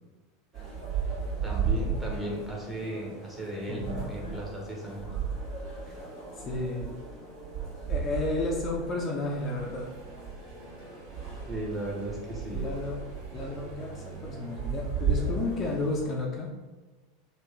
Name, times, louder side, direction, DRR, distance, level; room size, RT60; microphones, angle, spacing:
sound 1, 0.5-16.1, right 5 dB, 45° right, 1.4 m, -35 dB
voice 1, 1.4-5.2 5.9-6.0 11.5-12.7 13.3-13.4, equal, 10° right, -3 dB, 1.0 m, -36 dB
voice 2, 3.7-4.0 6.4-6.9 7.9-9.9 12.5-13.1 13.3-16.5, left 2 dB, 35° left, 0 dB, 0.5 m, -32 dB
sound 2, 9.4-15.9, right 3 dB, 65° right, 0.6 m, -50 dB
3.1 x 2.4 x 3.4 m, 1.2 s
hypercardioid pair, 90°, 0 cm